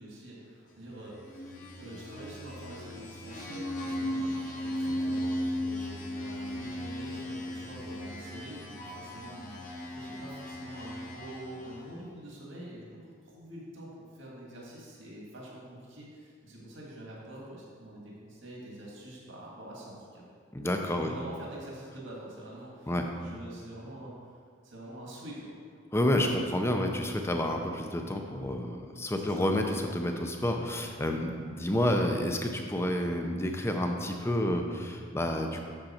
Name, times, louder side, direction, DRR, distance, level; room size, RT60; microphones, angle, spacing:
voice 1, 0.0-20.2 20.9-24.4 24.6-25.5 29.2-29.4, right 1 dB, 70° right, -4 dB, 1.8 m, -46 dB
sound 1, 1.1-12.0, left 1 dB, 40° left, 1.1 m, -36 dB
voice 2, 20.5-21.1 22.9-23.0 25.9-35.6, left 1 dB, 10° left, 4 dB, 0.5 m, -29 dB
7.9 x 6.9 x 4.3 m, 2.1 s
head